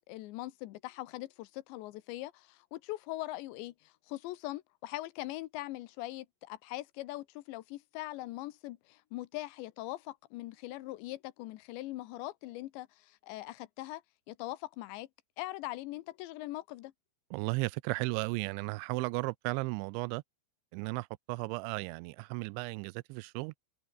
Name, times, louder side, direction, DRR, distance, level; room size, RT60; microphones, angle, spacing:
voice 1, 0.1-14.0 14.3-15.1 15.4-16.9, left 17 dB, 80° left, 3.1 m, -41 dB
voice 2, 17.3-20.2 20.7-23.5, right 24 dB, 85° right, 2.9 m, -35 dB
omnidirectional pair, 5.3 m